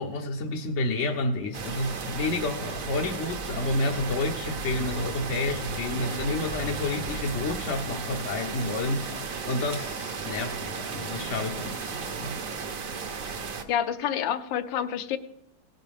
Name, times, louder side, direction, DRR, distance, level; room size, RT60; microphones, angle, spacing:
voice 1, 0.0-12.4, left 2 dB, 55° left, 0.8 m, -30 dB
sound 1, 1.5-13.6, right 5 dB, 50° right, 1.2 m, -34 dB
voice 2, 13.7-15.2, left 9 dB, 75° left, 1.4 m, -28 dB
17.5 x 9.8 x 3.5 m
omnidirectional pair, 2.1 m